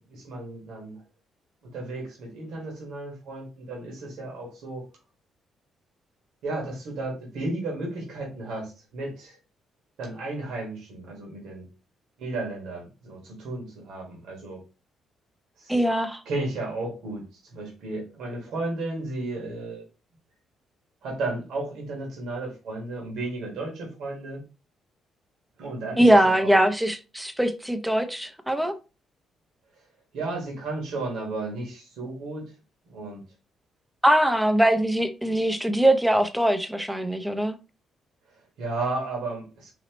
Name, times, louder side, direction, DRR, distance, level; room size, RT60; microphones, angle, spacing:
voice 1, 0.1-1.0 1.6-4.9 6.4-9.4 10.0-11.6 12.2-14.6 15.6-15.8 16.2-19.8 21.0-24.4 25.6-26.6 30.1-32.5 32.9-33.2 38.6-39.7, right 2 dB, 80° right, 1.5 m, -33 dB
voice 2, 15.7-16.2 26.0-28.8 34.0-37.6, right 1 dB, 5° right, 0.6 m, -22 dB
4.2 x 2.8 x 3.0 m
cardioid pair, 90°, 0 cm